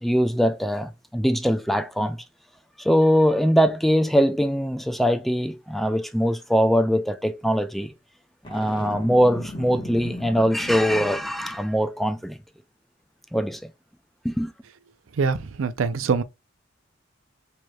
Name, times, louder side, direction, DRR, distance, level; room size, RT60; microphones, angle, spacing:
voice 1, 0.0-2.2 2.8-7.9 8.5-12.4 13.3-13.7 14.2-14.5, equal, ahead, 0.3 m, -22 dB
Boom, 8.4-11.6, equal, 25° left, 1.1 m, -37 dB
voice 2, 15.1-16.2, right 5 dB, 85° right, 0.4 m, -24 dB
4.7 x 3.0 x 2.2 m
head